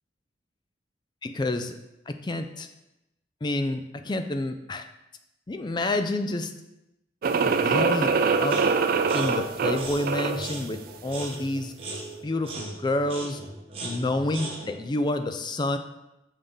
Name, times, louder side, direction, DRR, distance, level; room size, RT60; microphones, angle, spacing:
voice 1, 1.2-1.7 2.1-2.7 3.4-4.9 5.5-6.5 7.4-8.1 8.4-8.6 9.1-11.7 12.2-13.4 13.8-15.8, left 2 dB, 25° left, 8 dB, 0.4 m, -28 dB
sound 1, 7.2-10.5, right 5 dB, 50° right, 0.3 m, -24 dB
sound 2, 8.5-8.8 9.0-14.8, right 2 dB, 30° right, 1.1 m, -39 dB
5.4 x 5.4 x 3.5 m, 0.91 s
head